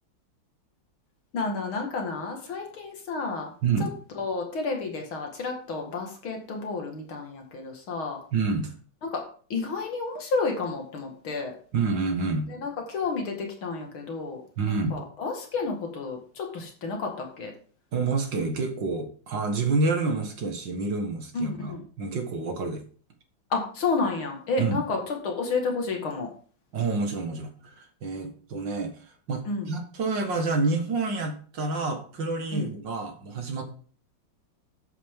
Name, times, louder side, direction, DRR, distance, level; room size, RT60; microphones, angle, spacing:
voice 1, 1.3-3.5 3.8-3.9 4.1-8.2 9.0-9.2 9.5-11.5 12.5-17.5 21.3-21.9 23.5-26.3 29.4-29.7 32.5-32.7, left 4 dB, 75° left, 2 dB, 2.7 m, -31 dB
voice 2, 8.3-8.7 11.7-12.5 14.6-15.0 17.9-22.8 24.6-24.8 26.7-33.6, right 4 dB, 60° right, 4 dB, 2.3 m, -28 dB
11.0 x 8.6 x 3.7 m, 0.43 s
omnidirectional pair, 2.3 m